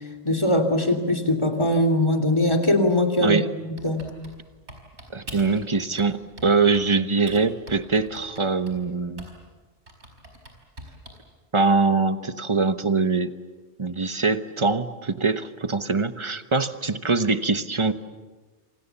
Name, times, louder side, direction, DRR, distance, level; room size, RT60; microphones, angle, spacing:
voice 1, 0.2-3.4 3.8-4.0, left 1 dB, 25° left, 4 dB, 3.0 m, -21 dB
Typing, 3.8-5.6 6.0-6.9 7.3-9.5 9.9-11.3, right 1 dB, 75° right, 5.2 m, -43 dB
voice 2, 5.1-9.3 11.5-13.3 13.8-17.9, right 4 dB, 25° right, 10 dB, 1.1 m, -23 dB
28.0 x 27.0 x 7.2 m, 1.3 s
omnidirectional pair, 1.2 m